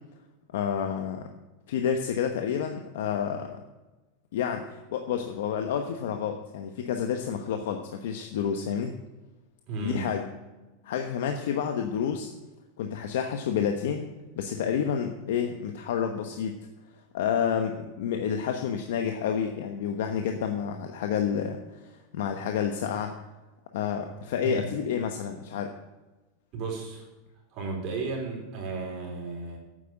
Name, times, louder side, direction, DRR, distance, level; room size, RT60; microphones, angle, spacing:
voice 1, 0.5-1.3 1.7-3.6 4.3-8.9 9.8-10.2 10.8-12.3 12.8-14.1 14.4-16.6 17.1-23.1 23.7-25.7, left 7 dB, 70° left, 5 dB, 1.1 m, -29 dB
voice 2, 9.7-10.2 24.4-24.8 26.5-27.0 27.5-29.6, right 3 dB, 35° right, -1 dB, 4.2 m, -34 dB
9.2 x 8.8 x 9.0 m, 1.1 s
supercardioid pair, 170°, 0 cm